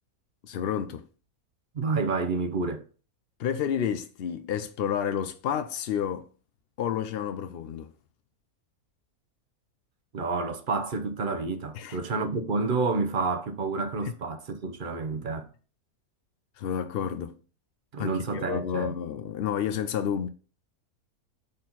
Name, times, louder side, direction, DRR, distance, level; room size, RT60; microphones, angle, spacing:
voice 1, 0.4-1.0 3.4-6.3 6.8-7.9 11.7-12.0 16.6-17.3 18.0-20.3, left 8 dB, 70° left, 0.5 m, -30 dB
voice 2, 1.7-2.8 10.1-15.5 17.9-18.9, right 4 dB, 40° right, 0.8 m, -29 dB
6.6 x 4.2 x 4.0 m
omnidirectional pair, 1.6 m